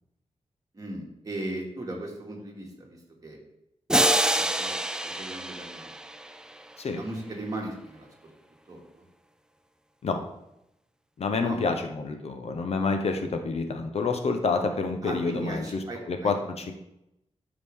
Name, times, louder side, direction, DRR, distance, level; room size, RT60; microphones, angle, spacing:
voice 1, 0.7-3.4 4.2-4.8 5.0-6.0 6.9-8.1 8.7-9.0 11.4-11.6 15.0-16.3, right 1 dB, 30° right, -1 dB, 2.1 m, -37 dB
sound 1, 3.9-6.8, right 1 dB, 5° right, 0.4 m, -26 dB
voice 2, 11.2-15.8 16.1-16.7, left 4 dB, 60° left, 6 dB, 0.9 m, -28 dB
12.5 x 5.1 x 3.6 m, 0.84 s
wide cardioid pair, 145°, 12 cm